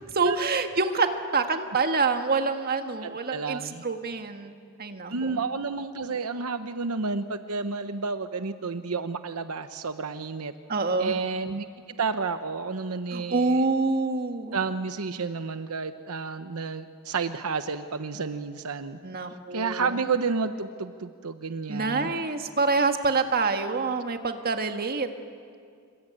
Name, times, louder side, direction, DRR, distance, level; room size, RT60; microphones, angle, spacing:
voice 1, 0.1-4.5 4.8-5.4 10.7-11.1 13.1-14.6 19.0-20.0 21.7-25.1, right 4 dB, 45° right, 6 dB, 1.7 m, -26 dB
voice 2, 3.0-3.8 5.1-10.5 11.0-13.6 14.5-19.0 19.5-22.1, right 4 dB, 75° right, 10 dB, 0.9 m, -31 dB
27.0 x 23.0 x 8.9 m, 2.3 s
head